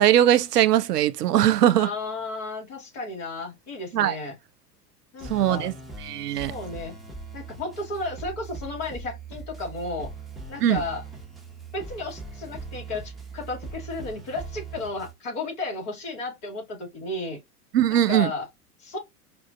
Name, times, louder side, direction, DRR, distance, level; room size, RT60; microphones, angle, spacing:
voice 1, 0.0-1.9 3.9-4.2 5.3-5.7 6.0-6.5 10.6-10.8 17.7-18.3, right 11 dB, 80° right, 0.6 m, -20 dB
voice 2, 1.7-4.4 5.1-5.7 6.3-7.0 7.3-10.1 10.5-11.0 11.7-17.4 17.9-18.5 18.8-19.0, left 2 dB, 55° left, 2.4 m, -33 dB
sound 1, 5.2-15.1, right 4 dB, ahead, 0.9 m, -40 dB
4.8 x 2.5 x 2.4 m
hypercardioid pair, 95°, 47 cm